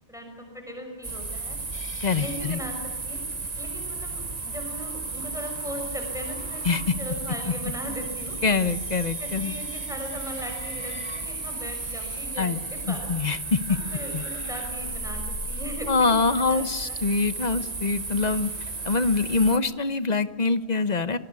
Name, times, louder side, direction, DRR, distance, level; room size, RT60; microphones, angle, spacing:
voice 1, 0.1-1.6 2.2-3.2 3.6-8.4 9.2-13.1 13.7-17.0, equal, 5° right, 3 dB, 5.9 m, -38 dB
sound 1, 1.0-19.6, right 3 dB, 40° right, 1.5 m, -34 dB
sound 2, 1.7-19.5, left 2 dB, 80° left, 2.5 m, -46 dB
voice 2, 2.0-2.6 6.6-6.9 7.5-7.6 8.4-9.5 12.4-12.6 12.9-13.8 14.1-14.2 15.9-18.5 18.8-21.2, left 4 dB, 40° left, 13 dB, 1.2 m, -24 dB
27.0 x 21.0 x 9.7 m, 1.2 s
omnidirectional pair, 1.1 m